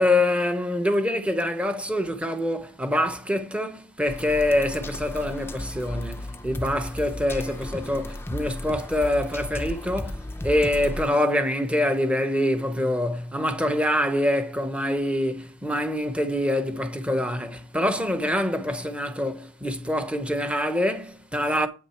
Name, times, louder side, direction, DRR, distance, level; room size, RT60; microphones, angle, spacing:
voice 1, 0.0-21.7, left 1 dB, 5° right, 1.0 m, -25 dB
sound 1, 4.0-11.1, left 1 dB, 10° left, 0.5 m, -35 dB
8.8 x 8.5 x 4.5 m
head